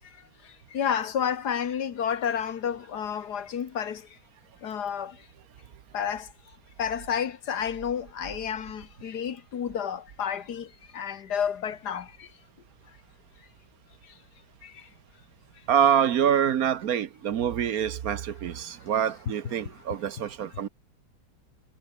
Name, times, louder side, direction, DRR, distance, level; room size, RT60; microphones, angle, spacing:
voice 1, 0.4-4.2 4.6-5.2 5.9-6.3 6.8-12.3 14.0-14.1 14.6-14.9, left 8 dB, 55° left, 1.8 m, -31 dB
voice 2, 15.7-20.7, right 9 dB, 55° right, 1.2 m, -25 dB
omnidirectional pair, 2.2 m